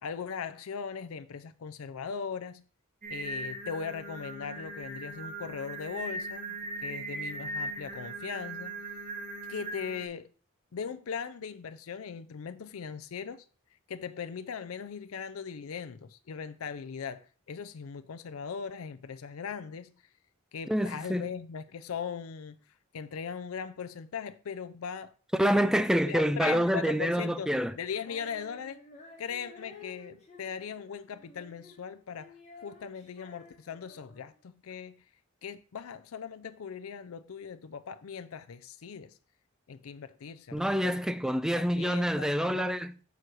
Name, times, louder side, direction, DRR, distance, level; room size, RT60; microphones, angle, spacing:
voice 1, 0.0-2.6 3.1-6.6 6.8-8.8 9.5-10.3 10.7-13.5 13.9-19.9 20.5-22.6 22.9-25.1 26.0-28.8 29.2-32.4 32.6-35.0 35.4-39.2 39.7-41.0 41.5-42.9, left 6 dB, 90° left, 0.5 m, -39 dB
Singing, 3.0-10.0, right 2 dB, 40° right, 2.1 m, -39 dB
voice 2, 20.7-21.3 25.4-27.7 40.5-42.9, equal, 5° right, 0.4 m, -27 dB
Female singing, 28.0-34.4, left 3 dB, 35° left, 2.2 m, -53 dB
7.2 x 4.6 x 6.1 m
head